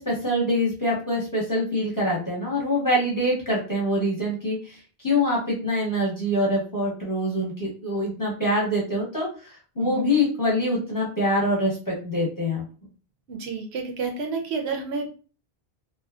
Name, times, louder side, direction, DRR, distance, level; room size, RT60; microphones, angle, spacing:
voice 1, 0.0-12.6, left 1 dB, 20° left, -4 dB, 0.8 m, -25 dB
voice 2, 9.8-10.1 13.3-15.1, right 4 dB, 80° right, 2 dB, 0.9 m, -30 dB
2.6 x 2.2 x 2.3 m, 0.37 s
omnidirectional pair, 1.1 m